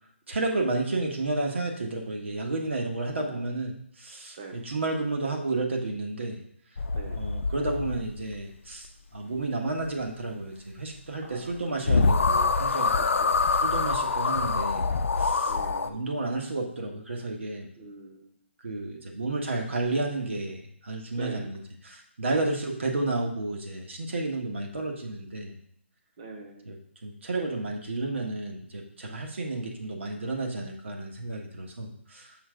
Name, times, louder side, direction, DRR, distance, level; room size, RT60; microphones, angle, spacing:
voice 1, 0.3-6.4 7.1-12.9 13.6-14.9 15.2-15.5 15.8-17.7 18.6-25.5 26.6-32.4, right 2 dB, 70° right, 1 dB, 1.4 m, -31 dB
voice 2, 3.2-3.5 4.4-4.6 6.9-7.2 11.2-11.8 13.2-13.4 15.5-16.0 17.8-18.3 21.1-21.5 26.2-26.7, right 3 dB, 25° right, 2 dB, 0.8 m, -43 dB
sound 1, 6.8-8.4 11.5-11.6 11.9-15.9, left 4 dB, 85° left, 0.5 m, -25 dB
5.6 x 3.3 x 5.1 m, 0.70 s
hypercardioid pair, 175°, 7 cm